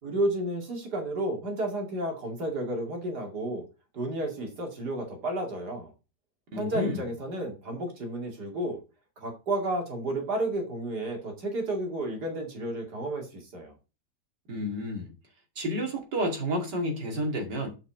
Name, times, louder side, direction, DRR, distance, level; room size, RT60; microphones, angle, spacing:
voice 1, 0.0-3.6 3.9-5.9 6.5-8.8 9.2-13.7, right 1 dB, 70° right, 3.0 m, -32 dB
voice 2, 6.5-7.1 14.5-15.1 15.6-17.7, equal, 90° right, 3.0 m, -30 dB
7.7 x 5.5 x 4.9 m
omnidirectional pair, 1.8 m